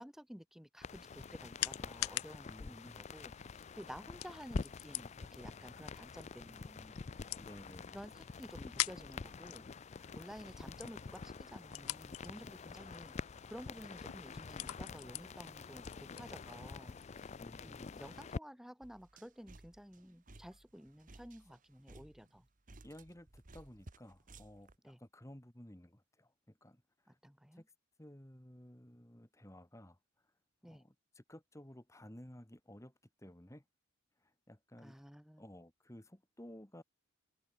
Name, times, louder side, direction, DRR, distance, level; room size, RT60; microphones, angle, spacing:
voice 1, 0.0-7.0 7.9-9.7 9.9-13.1 13.5-17.4 17.6-22.5 24.8-25.0 27.1-27.6 30.6-30.8 34.8-35.4, equal, ahead, 0.9 m, -52 dB
sound 1, 0.8-17.2, left 15 dB, 85° left, 0.6 m, -46 dB
sound 2, 0.8-18.4, left 4 dB, 30° left, 0.4 m, -47 dB
voice 2, 2.4-3.1 7.4-8.0 17.4-18.0 22.8-27.2 27.5-27.6 28.0-30.0 30.6-32.9 33.2-33.6 34.2-35.0 35.4-36.8, left 1 dB, 15° left, 1.6 m, -55 dB
sound 3, 18.8-24.8, right 2 dB, 35° right, 1.3 m, -58 dB
head